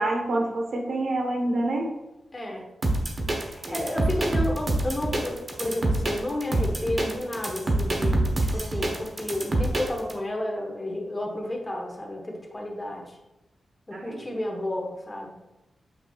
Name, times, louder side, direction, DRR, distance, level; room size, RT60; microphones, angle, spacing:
voice 1, 0.0-1.9 3.6-3.9 13.9-14.2, right 1 dB, 70° right, 1 dB, 1.2 m, -27 dB
voice 2, 2.3-2.7 3.3-13.2 13.9-15.4, left 1 dB, 25° left, 1 dB, 1.3 m, -32 dB
sound 1, 2.8-10.1, right 1 dB, 40° right, 1.1 m, -26 dB
7.4 x 5.8 x 2.4 m, 0.98 s
cardioid pair, 80°, 0 cm